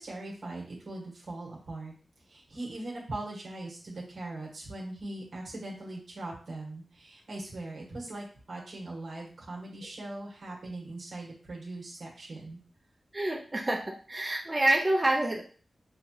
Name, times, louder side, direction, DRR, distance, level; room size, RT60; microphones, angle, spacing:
voice 1, 0.0-1.9 2.3-12.6, right 2 dB, 75° right, -2 dB, 1.5 m, -40 dB
voice 2, 13.1-15.4, right 1 dB, 25° right, 0 dB, 0.6 m, -27 dB
5.6 x 2.4 x 2.9 m, 0.41 s
wide cardioid pair, 80°, 0 cm